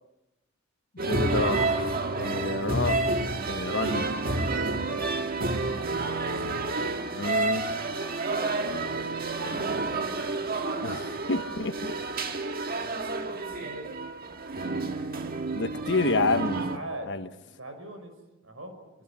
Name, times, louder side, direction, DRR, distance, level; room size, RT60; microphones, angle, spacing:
voice 1, 1.0-1.9 2.2-3.0 3.5-4.1 7.1-7.7 10.8-11.9 15.5-16.7 17.1-17.3, left 3 dB, 60° left, 10 dB, 1.2 m, -29 dB
sound 1, 1.0-16.8, right 3 dB, 45° right, 1.7 m, -29 dB
voice 2, 5.7-6.4 8.4-9.8 12.8-13.9 16.5-17.1 17.6-18.1 18.4-18.7, right 1 dB, 75° right, 6 dB, 6.1 m, -42 dB
26.0 x 24.5 x 7.5 m, 0.96 s
head